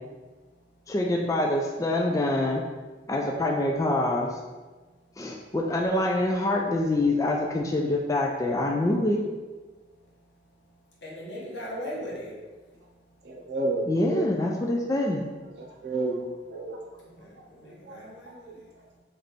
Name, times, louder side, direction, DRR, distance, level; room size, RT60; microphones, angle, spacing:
voice 1, 0.2-0.9 4.7-5.5 9.7-13.5 15.6-15.9 16.6-19.0, equal, 80° left, -5 dB, 1.3 m, -43 dB
voice 2, 0.9-2.6 3.1-4.4 5.2-9.2 13.9-15.2, left 1 dB, 20° left, 0 dB, 0.3 m, -25 dB
voice 3, 13.2-14.3 15.6-16.8 17.8-18.1 18.4-18.5, right 2 dB, 65° right, -2 dB, 0.8 m, -31 dB
3.3 x 3.2 x 4.0 m, 1.3 s
head